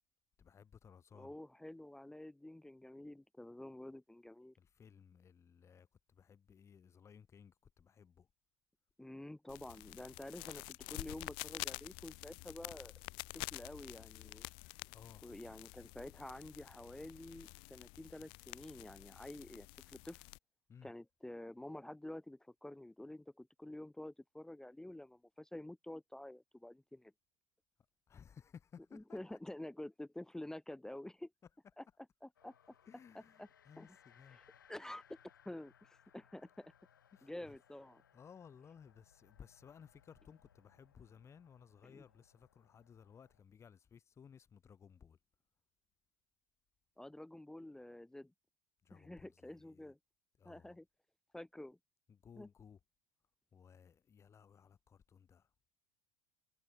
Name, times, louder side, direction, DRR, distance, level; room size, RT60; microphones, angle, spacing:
voice 1, 0.4-1.4 4.6-8.3 14.9-15.3 20.7-20.9 28.1-29.2 32.9-34.4 37.1-37.6 38.1-45.2 48.8-49.9 50.4-50.8 52.1-52.8 53.5-55.5, left 7 dB, 25° left, 1.0 m, -59 dB
voice 2, 1.1-4.6 9.0-13.0 13.5-14.5 15.2-20.2 20.8-27.1 28.9-31.3 31.8-31.9 32.2-32.5 33.1-33.5 33.8-33.9 34.3-34.4 34.7-35.2 35.4-36.7 37.2-38.0 41.8-42.0 47.0-48.3 48.9-50.0 50.4-50.9 51.3-51.8 52.4-52.5, left 1 dB, 5° left, 0.7 m, -49 dB
sound 1, 9.5-20.4, left 28 dB, 50° left, 0.4 m, -49 dB
sound 2, 32.4-43.4, left 9 dB, 80° left, 5.5 m, -68 dB
figure-of-eight pair, 75°, 11 cm